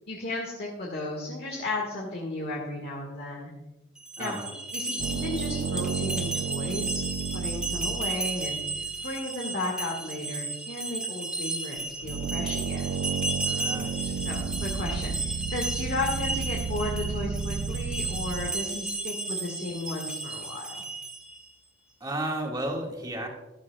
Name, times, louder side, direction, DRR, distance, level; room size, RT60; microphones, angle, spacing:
voice 1, 0.1-3.5 4.2-4.4 4.7-7.1 7.3-12.9 14.2-20.8, left 2 dB, 50° left, -1 dB, 1.8 m, -34 dB
sound 1, 4.0-21.4, right 2 dB, 5° right, 1.3 m, -34 dB
voice 2, 4.2-4.5 13.4-14.2 22.0-23.3, right 1 dB, 20° right, 0 dB, 1.9 m, -33 dB
sound 2, 5.0-9.1 11.8-18.5, right 5 dB, 75° right, 0.4 m, -33 dB
14.5 x 12.0 x 2.3 m, 1.0 s
head